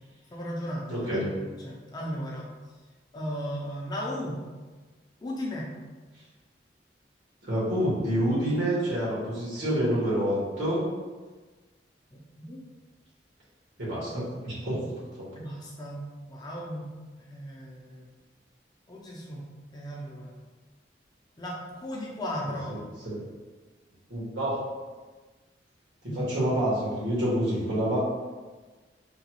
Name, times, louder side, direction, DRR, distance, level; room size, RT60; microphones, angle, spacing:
voice 1, 0.3-2.5 3.1-4.4 5.2-5.7 12.1-12.6 15.4-16.9 17.2-18.1 18.9-19.4 19.7-20.4 21.4-22.8 26.0-26.2, equal, 25° left, -3 dB, 0.5 m, -36 dB
voice 2, 0.9-1.2 7.4-10.8 13.8-14.8 15.1-15.2 23.0-23.2 24.1-24.6 26.3-28.0, equal, 85° right, -7 dB, 1.4 m, -27 dB
3.8 x 2.3 x 2.9 m, 1.3 s
head